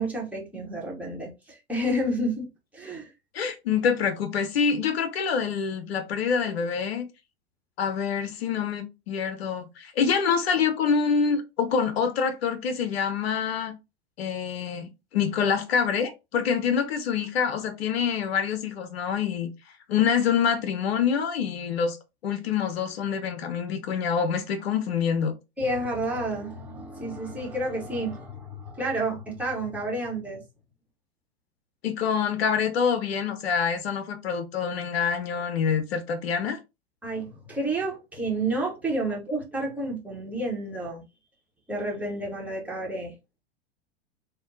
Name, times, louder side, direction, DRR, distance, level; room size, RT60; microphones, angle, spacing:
voice 1, 0.0-3.1 25.6-30.4 37.0-41.0 41.7-43.2, right 1 dB, 5° right, 1.2 m, -30 dB
voice 2, 3.3-7.1 7.8-13.7 14.2-19.5 19.9-22.0 22.2-25.3 31.8-36.6, left 6 dB, 70° left, 0.6 m, -26 dB
3.5 x 2.2 x 2.6 m
figure-of-eight pair, 90°, 32 cm